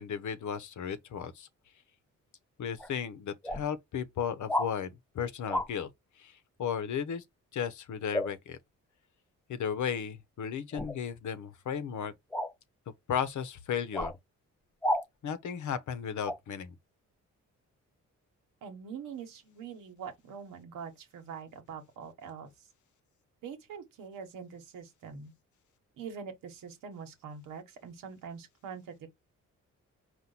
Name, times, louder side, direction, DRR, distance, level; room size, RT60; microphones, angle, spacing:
voice 1, 0.0-1.5 2.6-5.9 6.2-7.2 7.5-8.6 9.5-12.1 13.1-14.1 15.2-16.7, left 8 dB, 65° left, 0.8 m, -35 dB
sound 1, 2.8-2.9 3.4-3.6 4.5-4.7 5.5-5.7 8.1-8.3 10.7-11.0 12.3-12.5 13.9-14.2 14.8-15.0 16.3-16.4, left 1 dB, 5° left, 0.4 m, -31 dB
voice 2, 18.6-22.5 23.4-25.3 26.0-29.0, right 6 dB, 85° right, 1.2 m, -44 dB
4.4 x 2.5 x 3.8 m
cardioid pair, 70°, 32 cm